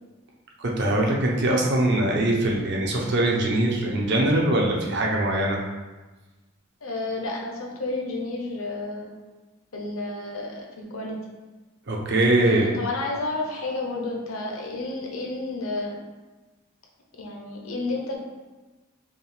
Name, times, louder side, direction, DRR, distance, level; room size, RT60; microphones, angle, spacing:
voice 1, 0.6-5.6 11.9-12.7, right 1 dB, 55° right, -1 dB, 0.7 m, -22 dB
voice 2, 6.8-9.1 9.7-11.2 12.3-16.0 17.2-18.2, left 2 dB, 75° left, 0 dB, 0.8 m, -31 dB
5.3 x 2.4 x 3.3 m, 1.2 s
head